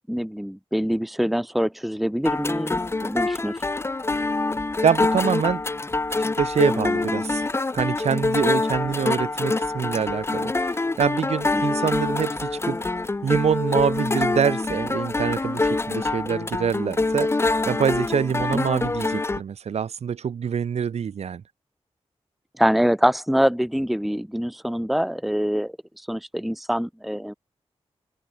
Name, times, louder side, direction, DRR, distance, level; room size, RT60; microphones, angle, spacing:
voice 1, 0.1-3.6 11.5-11.6 18.5-18.6 22.6-25.7 26.1-27.3, equal, ahead, 1.3 m, -24 dB
sound 1, 2.2-19.4, left 3 dB, 25° left, 1.1 m, -25 dB
voice 2, 4.8-5.6 6.4-7.5 7.7-12.8 13.2-21.4, right 7 dB, 75° right, 0.7 m, -25 dB
open air
wide cardioid pair, 160°, 11 cm